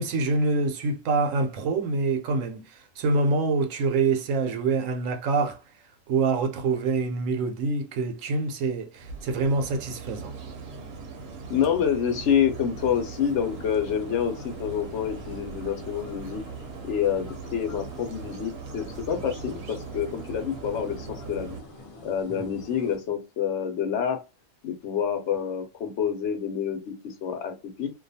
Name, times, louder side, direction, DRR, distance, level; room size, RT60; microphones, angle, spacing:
voice 1, 0.0-5.6 6.1-10.3 22.3-22.4, right 3 dB, 85° right, 1.0 m, -26 dB
sound 1, 8.9-21.6, right 5 dB, 60° right, 0.8 m, -40 dB
voice 2, 11.5-16.4 16.8-21.6 22.0-24.2 24.6-27.9, left 8 dB, 70° left, 0.9 m, -27 dB
sound 2, 12.7-23.0, left 2 dB, 40° left, 0.5 m, -47 dB
2.4 x 2.3 x 2.7 m
omnidirectional pair, 1.3 m